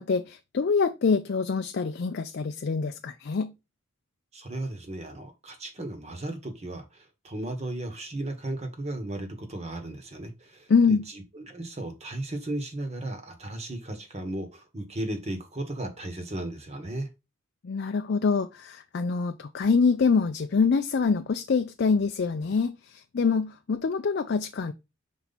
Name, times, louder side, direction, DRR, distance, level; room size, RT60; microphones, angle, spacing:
voice 1, 0.0-3.5 10.7-11.0 17.6-24.7, left 5 dB, 50° left, 0.4 m, -25 dB
voice 2, 4.3-17.1, right 1 dB, 30° right, 1.2 m, -35 dB
5.6 x 4.4 x 4.0 m
head